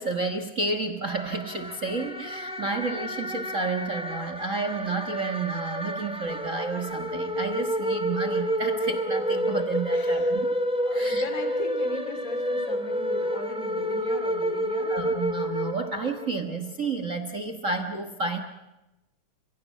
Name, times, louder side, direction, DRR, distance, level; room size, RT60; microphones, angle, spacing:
voice 1, 0.0-10.4 10.9-11.3 14.9-18.4, right 3 dB, 50° right, 8 dB, 0.9 m, -31 dB
sound 1, 1.1-16.3, equal, 5° right, 1.2 m, -29 dB
voice 2, 9.9-10.3 10.8-15.1, left 3 dB, 25° left, 6 dB, 3.3 m, -38 dB
30.0 x 16.5 x 8.5 m, 0.99 s
omnidirectional pair, 3.6 m